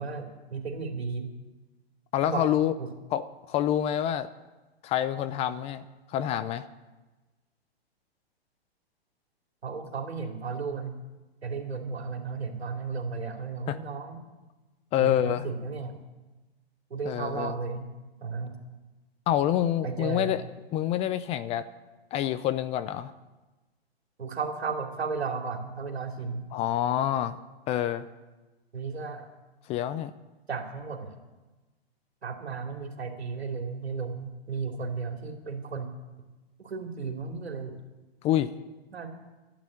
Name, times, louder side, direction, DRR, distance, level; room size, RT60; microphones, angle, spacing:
voice 1, 0.0-1.3 2.2-2.4 2.8-2.9 9.6-11.0 11.4-14.2 15.0-16.0 16.9-17.9 18.2-18.6 19.8-20.4 24.2-26.5 28.7-29.3 30.5-31.2 32.2-35.9 36.6-37.8 38.9-39.1, right 5 dB, 90° right, 3 dB, 2.8 m, -34 dB
voice 2, 2.1-2.7 3.1-4.3 4.8-5.8 6.1-6.6 13.7-13.8 14.9-15.4 17.1-17.5 19.3-20.4 20.7-21.7 22.1-23.1 26.5-27.4 27.7-28.1 29.7-30.1 38.2-38.5, left 11 dB, 20° left, 14 dB, 0.5 m, -27 dB
12.5 x 9.0 x 9.9 m, 1.2 s
hypercardioid pair, 125°, 31 cm